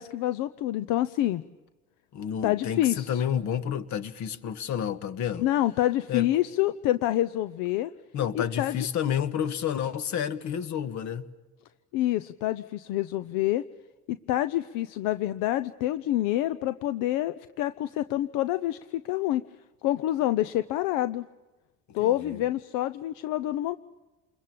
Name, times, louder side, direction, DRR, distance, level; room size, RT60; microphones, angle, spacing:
voice 1, 0.0-1.4 2.4-3.2 5.4-7.9 8.3-8.8 11.9-13.6 14.1-19.4 19.8-21.3 21.9-23.8, left 14 dB, 80° left, 0.8 m, -27 dB
voice 2, 2.1-5.5 6.1-6.3 8.1-11.3 22.0-22.4, left 9 dB, 60° left, 1.7 m, -30 dB
27.5 x 22.0 x 8.6 m
cardioid pair, 110°, 32 cm